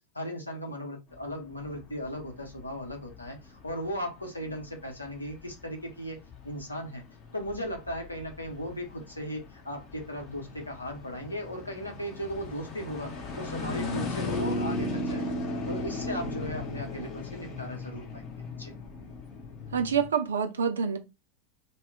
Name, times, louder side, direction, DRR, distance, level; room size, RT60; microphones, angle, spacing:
voice 1, 0.1-6.2 6.4-7.0 7.3-15.3 15.7-18.2 18.6-18.7, equal, 85° left, 0.8 m, -37 dB
sound 1, 1.1-20.1, left 2 dB, 35° left, 0.8 m, -37 dB
voice 2, 19.7-21.0, right 7 dB, 70° right, 0.5 m, -27 dB
2.2 x 2.0 x 3.6 m
figure-of-eight pair, 85°, 0 cm